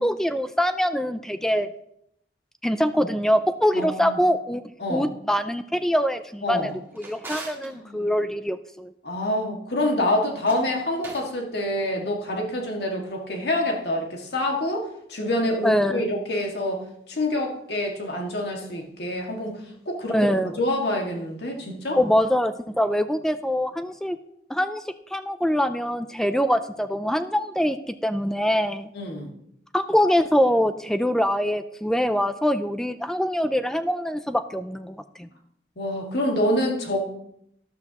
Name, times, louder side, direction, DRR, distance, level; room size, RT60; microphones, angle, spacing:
voice 1, 0.0-1.7 2.6-4.6 4.9-6.7 7.0-8.9 15.6-16.0 20.1-20.5 22.0-24.2 24.5-24.8 25.1-27.8 28.0-28.9 29.7-35.3, equal, 5° left, 11 dB, 0.3 m, -24 dB
voice 2, 3.7-4.2 4.8-5.1 6.4-6.7 7.6-8.1 9.0-16.8 17.1-19.6 19.9-20.3 20.6-22.0 28.9-29.3 35.8-37.2, left 1 dB, 65° left, 1 dB, 1.9 m, -27 dB
Drawer open or close, 6.5-7.7 10.3-11.3, right 2 dB, 15° right, 2.0 m, -41 dB
13.0 x 12.0 x 2.9 m, 0.74 s
head